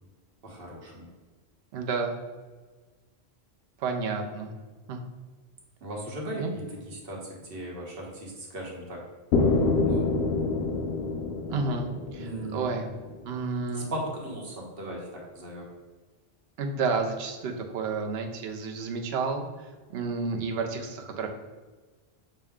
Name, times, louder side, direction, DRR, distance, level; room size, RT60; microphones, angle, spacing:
voice 1, 0.4-1.1 5.8-9.0 9.4-10.1 12.2-12.6 13.7-15.7, right 1 dB, 65° right, -2 dB, 1.2 m, -38 dB
voice 2, 1.7-2.1 3.8-4.5 4.9-5.0 6.4-6.5 11.5-12.9 13.2-13.9 16.6-19.5 19.9-21.3, right 4 dB, 80° right, 3 dB, 0.9 m, -30 dB
sound 1, 9.3-13.2, left 3 dB, 80° left, 0.8 m, -27 dB
6.3 x 2.1 x 3.5 m, 1.3 s
omnidirectional pair, 1.1 m